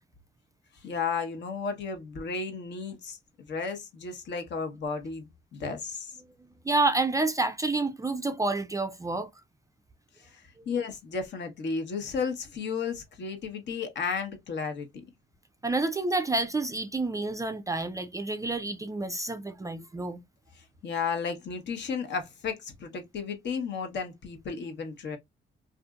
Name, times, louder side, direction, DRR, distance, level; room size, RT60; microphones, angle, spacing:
voice 1, 0.8-6.1 10.2-14.9 20.5-25.2, left 5 dB, 60° left, 0.9 m, -33 dB
voice 2, 6.6-9.3 15.6-20.2, right 3 dB, 15° right, 0.3 m, -29 dB
2.6 x 2.5 x 2.2 m
cardioid pair, 90°, 20 cm